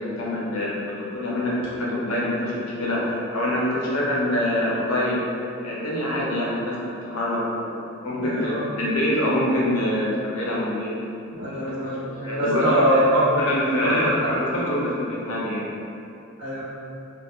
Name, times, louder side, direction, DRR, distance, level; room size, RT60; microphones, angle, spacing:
voice 1, 0.0-5.2 5.6-11.0 11.5-12.9 13.4-15.6, left 1 dB, 80° left, -5 dB, 0.6 m, -25 dB
voice 2, 8.2-8.7 11.3-12.1 12.4-13.4 13.8-14.3 16.4-16.6, equal, 65° right, -11 dB, 1.0 m, -22 dB
2.8 x 2.1 x 2.3 m, 2.6 s
head